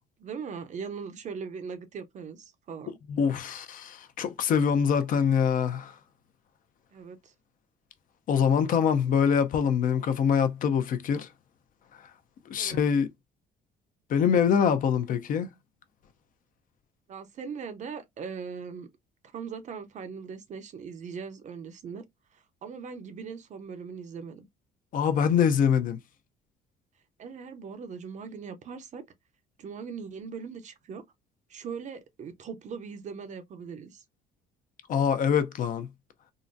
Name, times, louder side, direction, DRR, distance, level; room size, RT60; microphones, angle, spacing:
voice 1, 0.2-3.0 6.9-7.3 12.6-12.9 17.1-18.9 19.3-22.0 22.3-24.4 27.2-29.0 29.6-31.0 31.5-34.0, right 6 dB, 45° right, 0.6 m, -40 dB
voice 2, 3.1-5.9 8.3-11.3 12.5-13.1 14.1-15.5 24.9-26.0 34.9-35.9, left 7 dB, 55° left, 0.5 m, -24 dB
3.7 x 2.1 x 2.5 m
cardioid pair, 110°, 17 cm